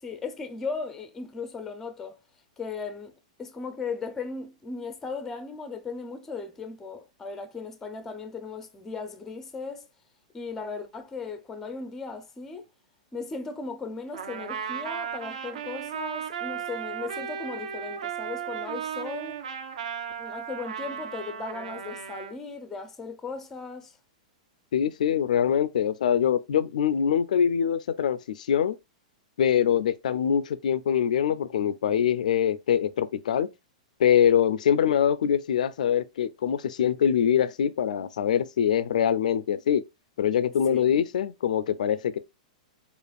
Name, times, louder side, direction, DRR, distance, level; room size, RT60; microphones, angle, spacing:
voice 1, 0.0-2.2 2.6-3.1 3.4-9.9 10.3-12.7 13.1-19.4 20.2-24.0 40.7-40.9, left 4 dB, 10° left, 0.4 m, -37 dB
Trumpet, 14.1-22.3, right 8 dB, 70° right, 0.7 m, -35 dB
voice 2, 24.7-28.8 29.4-33.5 34.0-39.8 40.2-42.2, left 8 dB, 80° left, 0.4 m, -24 dB
5.0 x 2.4 x 2.3 m
supercardioid pair, 165°, 4 cm